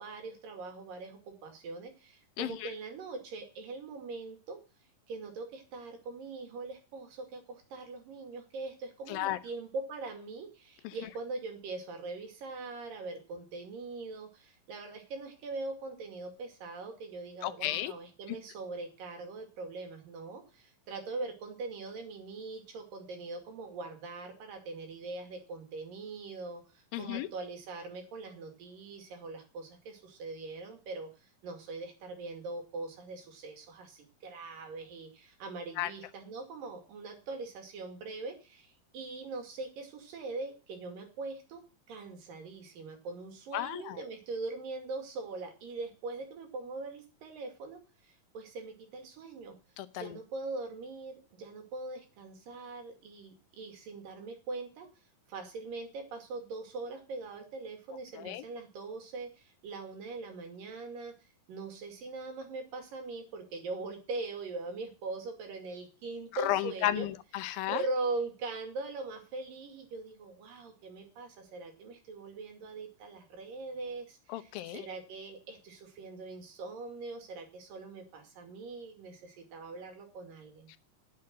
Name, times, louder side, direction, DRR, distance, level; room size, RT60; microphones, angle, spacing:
voice 1, 0.0-4.6 5.1-31.1 31.4-41.6 41.9-49.6 49.9-54.9 55.3-61.1 61.5-67.1 67.7-80.7, right 3 dB, 75° right, 4 dB, 4.0 m, -41 dB
voice 2, 2.4-2.7 9.1-9.4 10.8-11.0 17.4-17.9 26.9-27.3 35.8-35.9 43.5-44.0 49.8-50.2 58.2-58.5 66.4-67.8 74.3-74.8 80.7-80.8, left 14 dB, 90° left, 12 dB, 2.6 m, -33 dB
9.6 x 7.6 x 7.6 m, 0.34 s
omnidirectional pair, 4.0 m